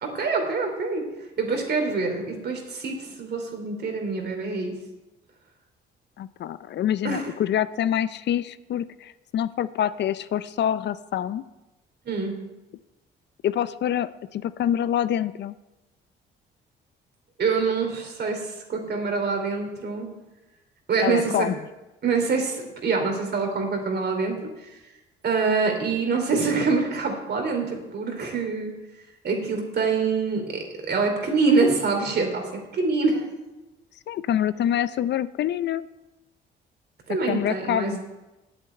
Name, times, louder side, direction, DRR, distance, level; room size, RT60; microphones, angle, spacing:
voice 1, 0.0-1.1 1.4-4.8 7.0-7.3 12.0-12.4 17.4-20.1 20.9-21.5 22.0-24.7 25.2-28.7 29.2-33.3 37.1-38.0, right 4 dB, 55° right, 3 dB, 3.0 m, -25 dB
voice 2, 6.2-11.4 13.4-15.6 21.0-21.6 34.1-35.9 37.3-38.0, left 10 dB, 60° left, 15 dB, 0.5 m, -26 dB
8.5 x 8.1 x 8.6 m, 1.0 s
cardioid pair, 90°, 20 cm